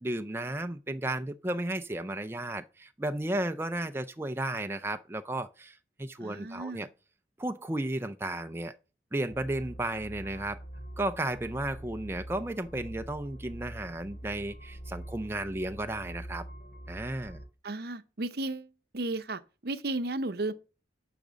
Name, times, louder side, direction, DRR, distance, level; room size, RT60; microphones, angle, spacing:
voice 1, 0.0-6.9 7.4-8.8 9.1-10.6 11.0-16.4 16.9-17.4, right 1 dB, 15° right, 0.4 m, -34 dB
voice 2, 6.2-6.9 17.6-20.5, right 2 dB, 60° right, 0.7 m, -34 dB
sound 1, 9.3-17.5, right 1 dB, 55° left, 3.2 m, -44 dB
10.5 x 5.0 x 6.3 m
head